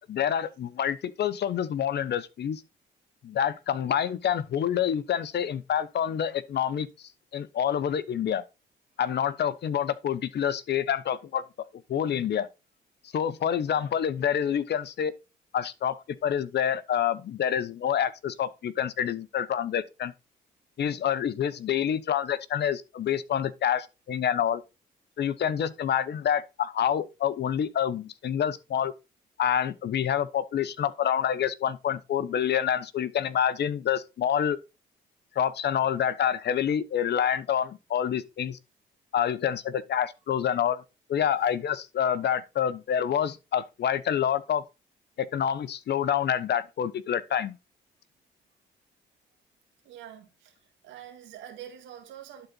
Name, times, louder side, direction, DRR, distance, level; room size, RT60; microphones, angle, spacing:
voice 1, 0.1-2.6 3.2-8.4 9.0-11.4 11.9-12.5 13.1-15.1 15.5-20.1 20.8-24.6 25.2-28.9 29.4-34.6 35.3-38.6 39.1-40.8 41.1-44.6 45.2-47.6, left 9 dB, 60° left, 0.9 m, -27 dB
voice 2, 49.8-50.5 50.8-52.5, right 10 dB, 85° right, 2.0 m, -45 dB
11.5 x 4.2 x 4.1 m
supercardioid pair, 60°, 19 cm